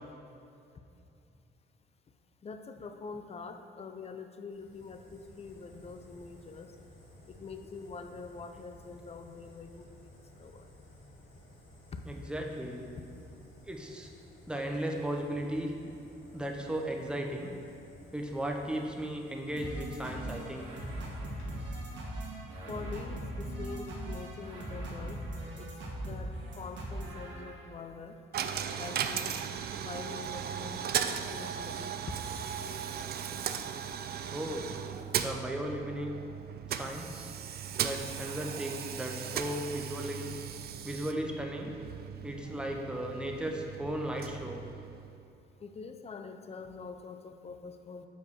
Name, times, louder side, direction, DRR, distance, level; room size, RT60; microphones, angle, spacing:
voice 1, 2.4-6.7 7.3-10.7 11.9-12.0 13.0-13.1 22.7-25.2 25.6-25.7 26.1-28.2 28.8-29.4 29.8-30.8 31.1-32.3 45.6-48.1, left 4 dB, 30° left, 7 dB, 0.5 m, -44 dB
Fire, 4.5-21.5, left 1 dB, 85° left, 1.6 m, -55 dB
voice 2, 12.1-12.9 13.7-14.1 14.5-15.7 16.3-17.5 18.1-20.7 34.3-34.7 35.2-36.1 36.7-37.3 37.8-40.3 40.8-41.7 42.2-44.6, right 1 dB, 5° right, 1 dB, 0.8 m, -36 dB
sound 1, 19.6-27.8, right 1 dB, 70° right, 1.5 m, -40 dB
Coin (dropping), 28.3-45.3, right 8 dB, 55° right, 0.4 m, -37 dB
5.4 x 4.7 x 6.3 m, 2.7 s
cardioid pair, 90°, 20 cm